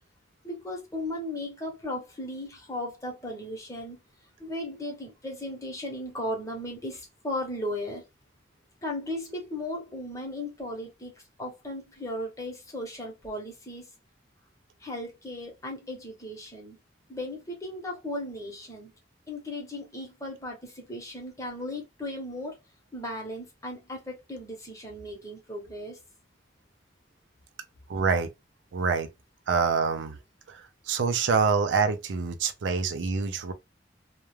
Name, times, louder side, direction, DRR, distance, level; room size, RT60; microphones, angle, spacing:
voice 1, 0.4-4.0 4.4-8.0 8.8-11.1 11.4-13.9 14.8-16.8 17.1-18.9 19.3-22.6 22.9-26.0, left 1 dB, 15° left, 0.8 m, -36 dB
voice 2, 27.9-28.3 28.7-29.1 29.5-30.2 30.5-33.5, right 5 dB, 85° right, 0.4 m, -26 dB
2.3 x 2.1 x 3.1 m
head